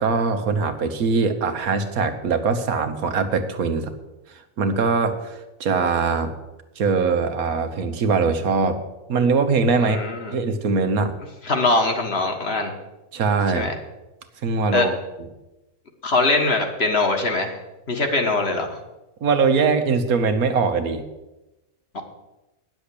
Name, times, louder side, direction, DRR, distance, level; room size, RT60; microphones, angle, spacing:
voice 1, 0.0-3.9 4.6-6.3 6.8-8.8 9.1-10.0 10.3-11.1 13.1-13.7 14.4-14.9 19.2-21.0, right 4 dB, 70° right, 8 dB, 1.5 m, -21 dB
voice 2, 9.8-10.3 11.4-12.7 13.5-13.7 14.7-14.9 16.0-17.6 17.9-18.8 21.9-22.0, left 3 dB, 45° left, 4 dB, 1.7 m, -22 dB
10.0 x 7.1 x 8.4 m, 1.0 s
omnidirectional pair, 1.6 m